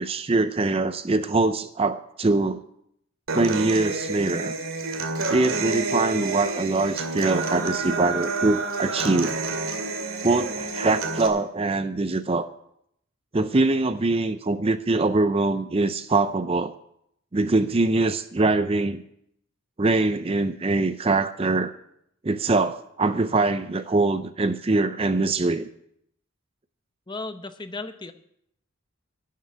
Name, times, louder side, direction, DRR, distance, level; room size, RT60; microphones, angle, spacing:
voice 1, 0.0-2.6 3.3-4.5 5.3-9.4 10.2-12.5 13.3-16.7 17.3-19.0 19.8-21.7 22.2-25.7, right 3 dB, 25° right, 11 dB, 0.5 m, -23 dB
Human voice / Acoustic guitar, 3.3-11.3, right 3 dB, 75° right, 2.2 m, -29 dB
voice 2, 27.1-28.1, left 3 dB, 20° left, 9 dB, 0.7 m, -35 dB
12.0 x 7.5 x 9.5 m, 0.73 s
head